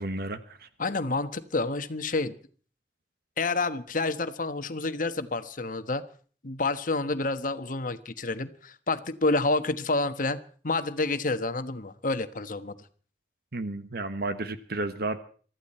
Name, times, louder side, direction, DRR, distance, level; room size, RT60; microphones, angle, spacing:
voice 1, 0.0-0.7 13.5-15.2, right 2 dB, 60° right, 10 dB, 1.3 m, -32 dB
voice 2, 0.8-2.4 3.4-6.0 6.4-12.7, left 3 dB, 50° left, 11 dB, 1.2 m, -29 dB
24.0 x 14.0 x 4.4 m, 0.42 s
head